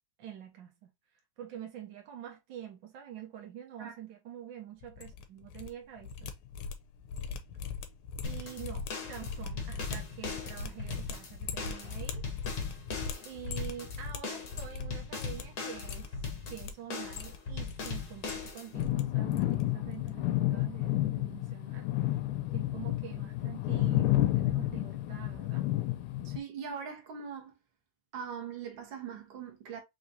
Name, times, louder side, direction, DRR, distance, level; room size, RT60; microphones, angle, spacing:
voice 1, 0.2-0.9 1.4-6.3 8.2-12.2 13.2-16.1 16.5-21.9 22.5-25.6, right 10 dB, 80° right, 1.0 m, -46 dB
sound 1, 4.8-5.7 6.0-14.9 15.2-15.4 15.7-16.7 17.0-17.9 18.1-19.0 19.3-19.6 19.9-20.1, left 5 dB, 75° left, 1.6 m, -40 dB
sound 2, 8.2-18.9, left 4 dB, 55° left, 1.0 m, -39 dB
sound 3, 18.7-26.4, left 15 dB, 90° left, 2.2 m, -30 dB
voice 2, 26.2-27.5 28.1-29.8, right 7 dB, 55° right, 1.5 m, -41 dB
5.3 x 3.3 x 2.7 m
omnidirectional pair, 3.5 m